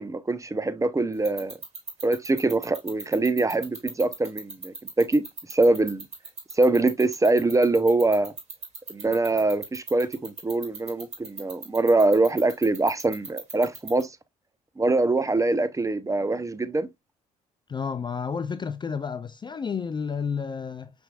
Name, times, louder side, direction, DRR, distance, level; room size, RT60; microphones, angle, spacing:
voice 1, 0.0-1.6 2.0-5.2 5.5-6.0 6.5-8.3 8.9-14.1 14.8-16.9, right 2 dB, 15° right, 0.7 m, -23 dB
sound 1, 1.1-14.0, right 3 dB, 35° right, 2.4 m, -36 dB
voice 2, 17.7-20.9, left 6 dB, 25° left, 0.4 m, -31 dB
5.8 x 3.5 x 2.3 m
hypercardioid pair, 55°, 18 cm